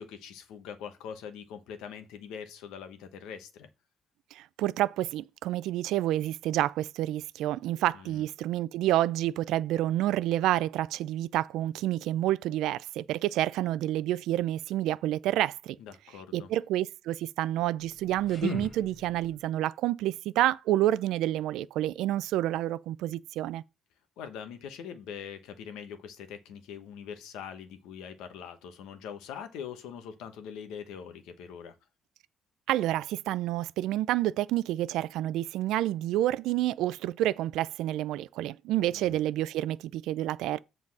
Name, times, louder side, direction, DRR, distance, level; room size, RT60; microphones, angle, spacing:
voice 1, 0.0-3.7 7.9-8.2 15.8-16.5 24.2-31.7 38.9-39.2, left 7 dB, 90° left, 1.1 m, -43 dB
voice 2, 4.3-15.8 16.3-23.6 32.7-40.6, right 14 dB, 85° right, 0.4 m, -29 dB
sound 1, 17.8-19.5, left 3 dB, 35° left, 1.7 m, -38 dB
7.5 x 4.0 x 6.0 m
cardioid pair, 100°, 0 cm